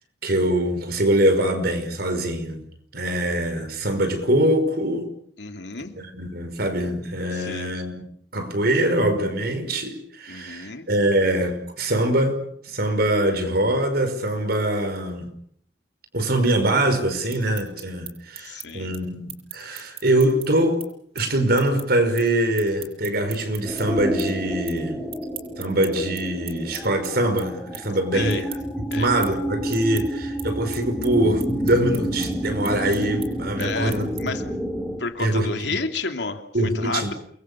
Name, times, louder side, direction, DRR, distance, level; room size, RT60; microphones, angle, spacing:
voice 1, 0.2-2.6 2.9-5.1 6.0-8.0 8.3-15.3 16.1-20.8 21.2-25.0 25.6-28.5 28.9-34.4 35.2-35.8 36.5-37.1, right 1 dB, 60° right, 5.3 m, -23 dB
voice 2, 5.4-6.0 7.3-7.7 10.3-10.9 18.4-18.9 28.1-28.5 28.9-29.1 33.6-34.4 35.0-37.1, left 4 dB, 80° left, 2.9 m, -31 dB
sound 1, 17.1-23.8 24.2-24.8 25.1-34.5, right 8 dB, 35° right, 7.4 m, -40 dB
sound 2, 23.6-35.0, right 1 dB, ahead, 4.6 m, -29 dB
28.5 x 22.5 x 7.1 m
head